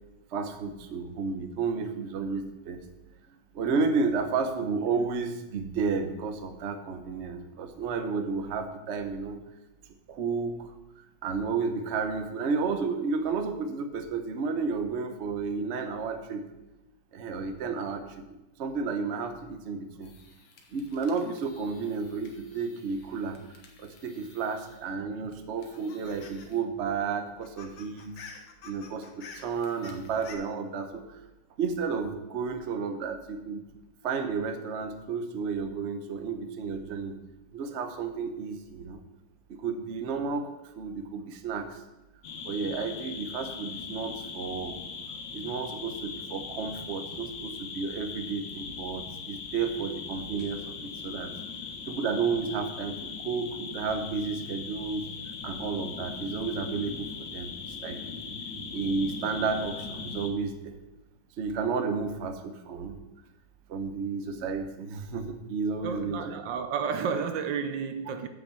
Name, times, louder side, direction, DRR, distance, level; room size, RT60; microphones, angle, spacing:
voice 1, 0.3-2.8 3.3-9.4 10.1-10.7 11.2-16.5 17.1-18.0 18.6-20.1 20.7-23.4 23.8-28.1 28.6-31.0 31.6-33.6 34.0-37.1 37.5-39.0 39.5-41.8 42.4-44.8 45.3-51.3 51.9-55.1 55.4-58.0 58.7-60.7 61.4-63.0 63.7-66.2, right 5 dB, 50° right, 0.8 m, -32 dB
sound 1, 20.0-25.0 25.3-26.6 26.9-27.0 27.3-30.4, left 5 dB, 80° left, 2.0 m, -51 dB
sound 2, 42.2-60.3, left 5 dB, 65° left, 1.5 m, -39 dB
voice 2, 65.8-68.3, right 6 dB, 70° right, 1.2 m, -31 dB
7.8 x 5.9 x 7.4 m
omnidirectional pair, 2.2 m